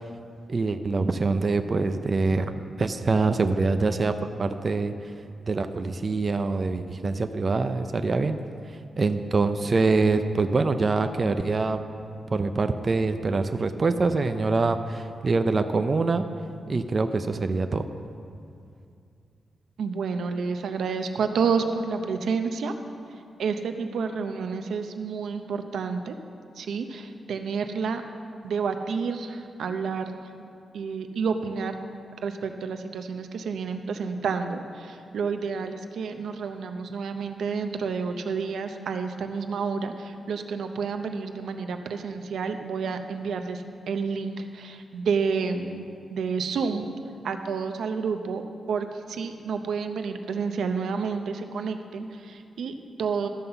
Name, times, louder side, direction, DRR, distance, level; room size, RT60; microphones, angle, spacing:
voice 1, 0.5-4.9 5.5-8.4 9.0-11.8 12.3-16.2 16.7-17.8, right 3 dB, 35° right, 8 dB, 0.4 m, -24 dB
voice 2, 19.8-22.7 23.4-26.1 26.6-28.0 28.4-30.1 30.4-30.5 30.7-31.8 32.2-46.9 47.2-48.4 48.7-53.3, right 5 dB, 90° right, 6 dB, 0.7 m, -30 dB
13.0 x 5.6 x 6.8 m, 2.5 s
wide cardioid pair, 145°, 0 cm